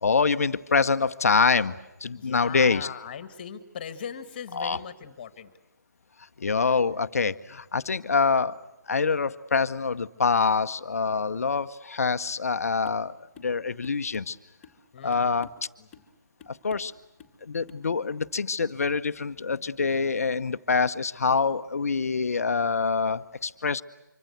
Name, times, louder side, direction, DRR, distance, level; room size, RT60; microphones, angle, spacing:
voice 1, 0.0-2.9 4.5-4.8 6.4-14.4 15.0-15.5 16.5-16.9 17.4-23.8, left 5 dB, 50° left, 12 dB, 0.9 m, -25 dB
voice 2, 2.1-5.5 14.9-15.4 15.8-15.9, left 7 dB, 30° left, 13 dB, 1.9 m, -39 dB
sound 1, 12.9-13.1 13.4-13.6 13.8-14.8 15.1-15.7 15.9-16.1 16.4-16.9 17.2-17.4 17.7-17.9, left 6 dB, 10° left, 2.2 m, -50 dB
25.5 x 25.0 x 8.3 m, 0.93 s
figure-of-eight pair, 150°, 10 cm